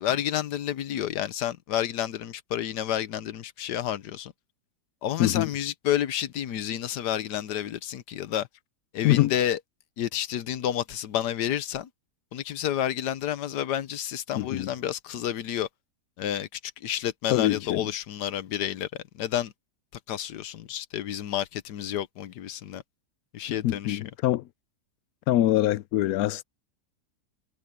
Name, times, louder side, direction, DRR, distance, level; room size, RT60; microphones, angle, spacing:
voice 1, 0.0-4.3 5.0-8.5 8.9-9.6 10.0-11.9 12.3-15.7 16.2-18.9 19.2-19.5 20.1-22.8 23.3-24.0, left 11 dB, 85° left, 1.5 m, -30 dB
voice 2, 5.2-5.5 9.0-9.3 14.4-14.7 17.3-17.9 23.6-24.4 25.3-26.4, left 14 dB, 70° left, 1.0 m, -24 dB
omnidirectional pair, 1.7 m